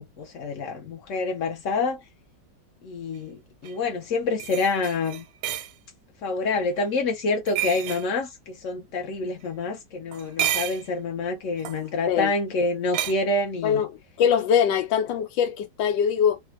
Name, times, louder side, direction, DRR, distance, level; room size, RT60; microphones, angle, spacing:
voice 1, 0.0-2.0 2.8-5.2 6.2-13.9, left 3 dB, 60° left, 0.8 m, -27 dB
sound 1, 3.6-3.7 4.4-5.7 7.5-8.1 10.1-10.9 11.6-11.8 12.9-13.1, right 12 dB, 70° right, 0.9 m, -29 dB
voice 2, 14.2-16.4, left 8 dB, 85° left, 1.3 m, -22 dB
3.2 x 2.3 x 3.0 m
omnidirectional pair, 2.0 m